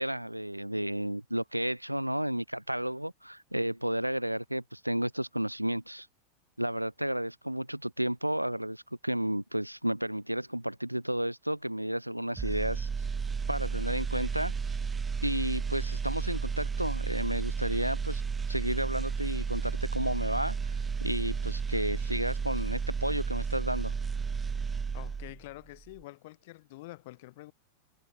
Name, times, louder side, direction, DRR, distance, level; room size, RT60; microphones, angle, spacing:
voice 1, 0.0-6.1 6.6-12.9 13.5-14.5 15.2-18.2 18.5-20.6 21.0-23.9, right 1 dB, 90° right, 2.1 m, -32 dB
sound 1, 12.4-25.5 25.8-26.0, right 5 dB, 15° right, 2.8 m, -33 dB
voice 2, 24.9-27.5, left 20 dB, 50° left, 3.7 m, -47 dB
figure-of-eight pair, 90°, 0 cm